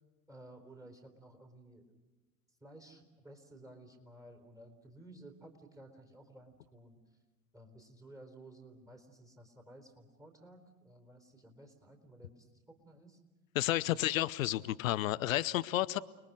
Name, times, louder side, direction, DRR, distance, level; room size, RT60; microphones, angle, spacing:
voice 1, 0.3-1.9 2.6-7.0 7.5-13.2 13.8-14.0, right 1 dB, 5° right, 3 dB, 4.0 m, -55 dB
voice 2, 13.5-16.0, left 15 dB, 60° left, 18 dB, 0.8 m, -31 dB
30.0 x 21.5 x 6.5 m, 1.1 s
figure-of-eight pair, 80°, 47 cm